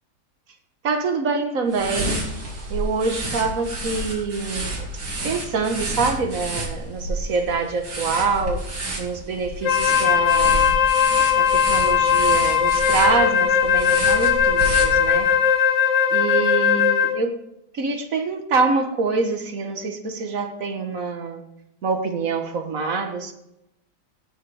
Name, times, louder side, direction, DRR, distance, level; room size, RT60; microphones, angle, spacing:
voice 1, 0.8-2.3 2.7-4.9 5.2-8.7 9.0-10.7 11.4-15.3 16.1-17.4 17.7-21.4 21.8-23.3, right 4 dB, 50° right, 1.6 m, -25 dB
sound 1, 1.7-15.4, right 1 dB, 85° right, 3.3 m, -30 dB
Wind instrument woodwind instrument, 9.6-17.3, left 8 dB, 75° left, 1.4 m, -19 dB
17.0 x 6.6 x 4.9 m
omnidirectional pair, 2.0 m